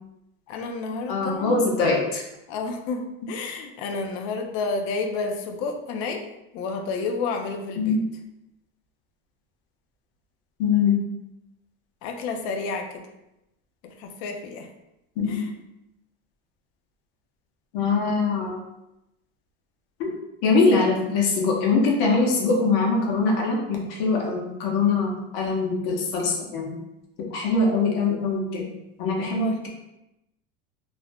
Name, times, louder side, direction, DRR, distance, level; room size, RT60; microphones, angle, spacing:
voice 1, 0.5-1.6 2.5-6.2 6.5-8.0 12.0-13.1 13.8-14.7 15.3-15.5 29.4-29.6, left 4 dB, 50° left, 4 dB, 0.4 m, -30 dB
voice 2, 1.1-2.2 7.8-8.0 10.6-11.0 15.2-15.4 17.7-18.6 20.0-26.8 27.3-28.7 29.0-29.7, left 4 dB, 70° left, -1 dB, 0.8 m, -23 dB
2.5 x 2.0 x 3.3 m, 0.89 s
supercardioid pair, 150°, 29 cm